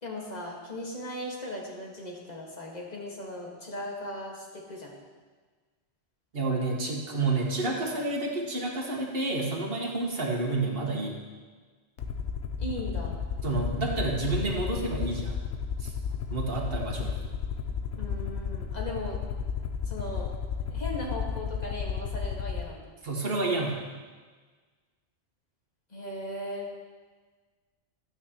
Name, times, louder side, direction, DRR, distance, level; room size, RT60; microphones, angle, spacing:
voice 1, 0.0-5.0 12.6-13.2 17.9-19.2 19.9-20.3 20.7-22.9 25.9-26.7, left 1 dB, 35° left, -2 dB, 1.8 m, -38 dB
voice 2, 6.3-11.2 13.4-15.4 15.8-15.9 16.3-17.2 23.0-23.8, right 2 dB, 55° right, -1 dB, 1.6 m, -29 dB
Aircraft, 12.0-22.6, left 6 dB, 80° left, 1.1 m, -33 dB
12.5 x 9.2 x 3.0 m, 1.4 s
omnidirectional pair, 1.2 m